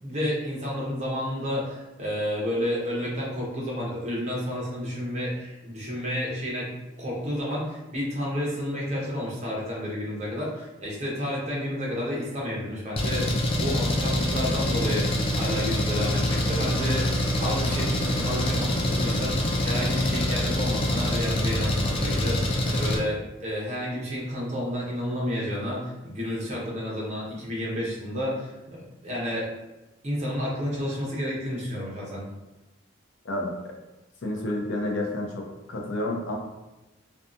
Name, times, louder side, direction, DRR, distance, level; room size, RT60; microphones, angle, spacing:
voice 1, 0.0-29.5 30.0-32.2, equal, 35° right, -4 dB, 0.8 m, -31 dB
Engine, 13.0-23.0, left 1 dB, 30° left, 0.3 m, -25 dB
voice 2, 34.2-36.3, left 1 dB, 80° left, 1 dB, 0.6 m, -30 dB
2.7 x 2.3 x 2.4 m, 1.1 s
head